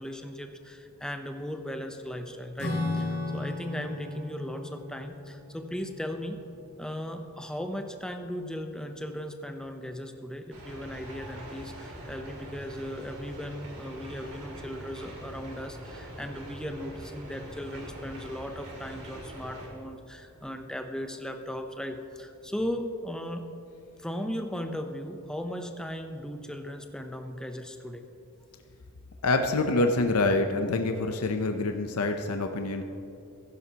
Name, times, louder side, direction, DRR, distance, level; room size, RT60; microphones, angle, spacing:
voice 1, 0.0-6.4 6.8-23.4 24.0-28.0, equal, 5° left, 5 dB, 0.6 m, -37 dB
Acoustic guitar / Strum, 2.6-7.4, left 2 dB, 65° left, 2.0 m, -36 dB
sound 1, 10.5-19.7, right 1 dB, 90° right, 2.6 m, -43 dB
voice 2, 29.2-32.8, left 2 dB, 85° left, 6 dB, 0.6 m, -26 dB
15.5 x 11.0 x 2.9 m, 2.6 s
head